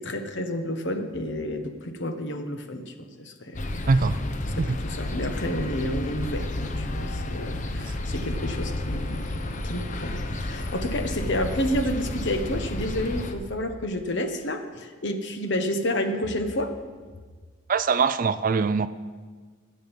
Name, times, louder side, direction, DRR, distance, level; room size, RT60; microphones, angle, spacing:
voice 1, 0.0-3.6 4.4-9.3 9.6-16.7, left 1 dB, 60° left, 7 dB, 1.2 m, -30 dB
sound 1, 3.5-13.3, left 1 dB, 35° left, 0.8 m, -31 dB
voice 2, 3.9-4.2 4.6-4.8 17.7-18.9, right 4 dB, 40° right, 14 dB, 0.4 m, -22 dB
20.5 x 7.8 x 5.3 m, 1.5 s
head